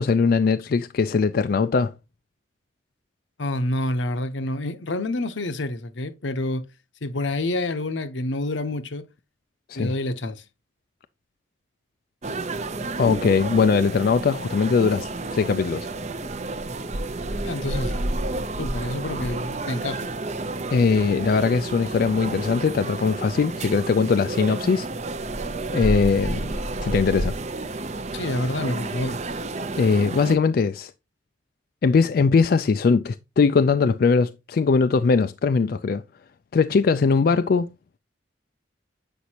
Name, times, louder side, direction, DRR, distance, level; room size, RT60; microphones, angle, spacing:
voice 1, 0.0-1.9 9.7-9.9 13.0-15.9 20.7-24.9 25.7-26.5 26.8-27.3 29.8-30.9 31.8-36.0 36.5-37.7, left 5 dB, 50° left, 0.3 m, -20 dB
voice 2, 3.4-6.6 7.0-9.0 9.7-10.4 17.4-18.0 18.6-20.1 28.1-29.2, left 1 dB, 75° left, 0.8 m, -28 dB
sound 1, 12.2-30.4, right 2 dB, 35° right, 0.6 m, -30 dB
8.1 x 5.2 x 2.8 m
head